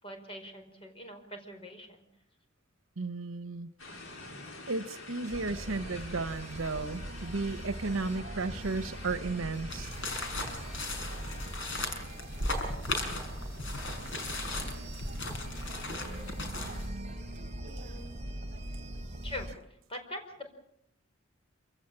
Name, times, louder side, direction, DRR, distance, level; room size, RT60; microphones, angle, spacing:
voice 1, 0.0-2.0 15.7-16.4 17.6-18.1 19.2-19.5 19.9-20.5, left 1 dB, 30° left, 5 dB, 5.1 m, -44 dB
voice 2, 3.0-3.7 4.7-9.9 16.0-17.5, right 3 dB, 80° right, 11 dB, 0.9 m, -35 dB
sound 1, 3.8-11.5, left 3 dB, 90° left, 4.8 m, -48 dB
sound 2, 5.3-19.5, right 1 dB, 35° right, 3.4 m, -42 dB
sound 3, 9.7-16.9, left 2 dB, 65° left, 5.7 m, -36 dB
27.5 x 16.5 x 8.8 m, 0.76 s
head